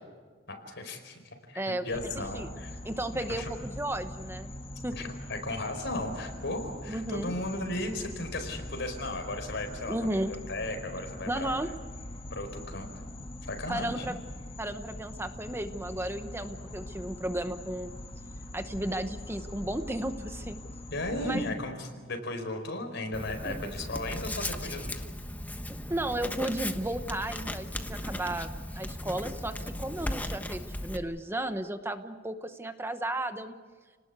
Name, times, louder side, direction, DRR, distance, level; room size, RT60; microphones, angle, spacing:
voice 1, 0.5-1.2 1.5-2.8 3.3-3.5 4.9-11.5 12.3-12.9 13.4-14.1 20.9-25.0, left 1 dB, 65° left, 6 dB, 4.8 m, -35 dB
sound 1, 1.9-21.5, left 1 dB, 30° left, 2.2 m, -43 dB
voice 2, 2.8-4.5 4.8-4.9 6.9-7.3 9.9-10.3 11.3-11.7 13.7-14.2 14.6-17.9 18.5-20.6 21.2-21.5 23.4-23.6 25.9-33.6, right 1 dB, 15° right, 8 dB, 1.0 m, -34 dB
Writing, 23.1-31.0, left 1 dB, 10° left, 1.2 m, -37 dB
30.0 x 19.5 x 8.3 m, 1.5 s
head